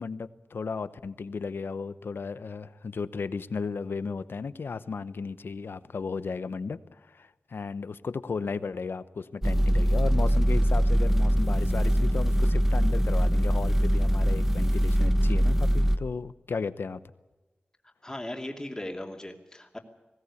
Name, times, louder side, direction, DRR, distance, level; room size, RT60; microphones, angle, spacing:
voice 1, 0.0-17.0, left 5 dB, 90° left, 14 dB, 0.9 m, -35 dB
sound 1, 9.4-16.0, equal, 10° right, 1.0 m, -23 dB
voice 2, 18.0-19.8, left 1 dB, 20° left, 3 dB, 2.6 m, -37 dB
20.0 x 17.5 x 8.4 m, 1.1 s
wide cardioid pair, 85°, 4 cm